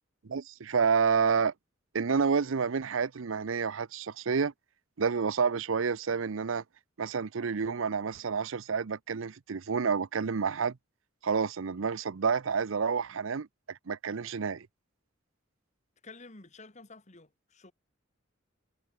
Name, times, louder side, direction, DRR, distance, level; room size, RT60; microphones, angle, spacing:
voice 1, 0.2-1.5 1.9-4.5 5.0-6.6 7.0-10.8 11.2-14.7, right 5 dB, 75° right, 0.6 m, -29 dB
voice 2, 16.0-17.7, left 3 dB, 35° left, 1.9 m, -51 dB
head